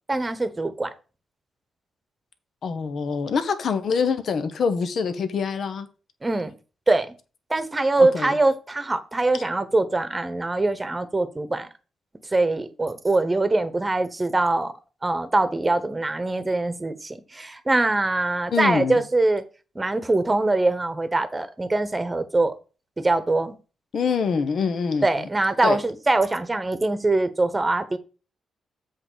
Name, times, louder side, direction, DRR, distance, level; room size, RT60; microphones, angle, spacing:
voice 1, 0.1-0.9 6.2-6.5 6.9-7.1 7.5-11.7 12.3-14.7 15.0-19.4 19.7-22.5 23.0-23.5 25.0-28.0, right 2 dB, 20° right, 1.1 m, -23 dB
voice 2, 2.6-5.9 8.0-8.4 9.3-9.4 18.5-19.0 23.9-25.3 25.6-25.8, left 5 dB, 60° left, 1.0 m, -25 dB
7.8 x 3.7 x 6.7 m
cardioid pair, 90°, 0 cm